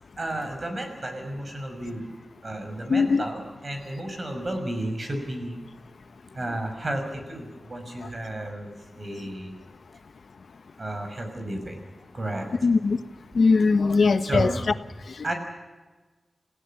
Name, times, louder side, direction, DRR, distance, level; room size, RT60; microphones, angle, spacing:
voice 1, 0.2-2.1 2.4-5.6 6.3-9.5 10.8-11.8 12.1-12.5 14.2-14.5 15.2-15.3, right 1 dB, 45° right, 5 dB, 6.2 m, -32 dB
voice 2, 2.9-3.2 12.6-13.0 13.3-14.5, left 4 dB, 75° left, 11 dB, 1.1 m, -20 dB
28.0 x 16.5 x 7.3 m, 1.3 s
cardioid pair, 65°, 0 cm